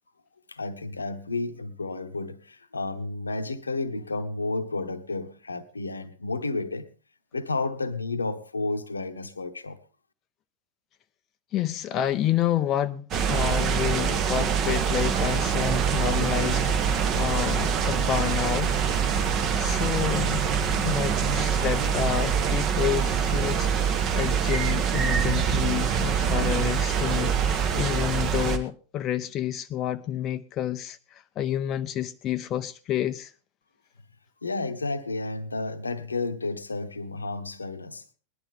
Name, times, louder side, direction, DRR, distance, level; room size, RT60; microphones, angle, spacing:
voice 1, 0.5-6.9 7.3-9.8 34.4-38.0, left 3 dB, 80° left, 1.0 m, -31 dB
voice 2, 11.5-18.8 19.6-20.5 20.8-33.3, left 11 dB, 30° left, 0.6 m, -29 dB
sound 1, 13.1-28.6, right 7 dB, 35° right, 1.5 m, -24 dB
19.0 x 11.5 x 3.7 m
figure-of-eight pair, 90°, 0 cm